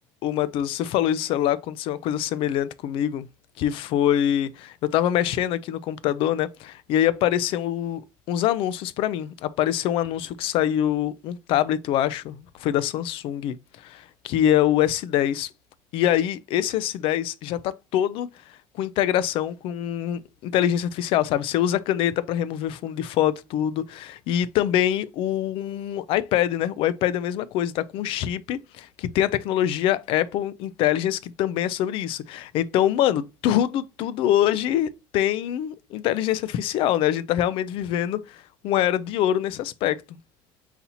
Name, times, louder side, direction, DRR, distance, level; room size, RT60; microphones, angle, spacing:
voice 1, 0.2-3.3 3.6-8.0 8.3-13.5 13.8-15.5 15.9-18.3 18.7-40.2, left 11 dB, 65° left, 0.4 m, -24 dB
4.1 x 2.8 x 4.0 m
cardioid pair, 120°, 10 cm